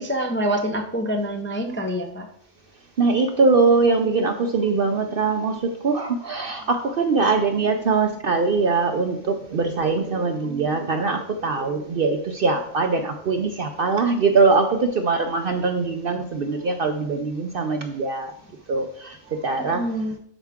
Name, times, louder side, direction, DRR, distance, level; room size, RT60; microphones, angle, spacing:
voice 1, 0.0-2.3 19.7-20.2, equal, 15° left, 3 dB, 0.4 m, -26 dB
voice 2, 3.0-18.3 18.7-19.8, right 4 dB, 55° right, 6 dB, 0.6 m, -22 dB
11.0 x 4.7 x 3.6 m, 0.68 s
omnidirectional pair, 1.4 m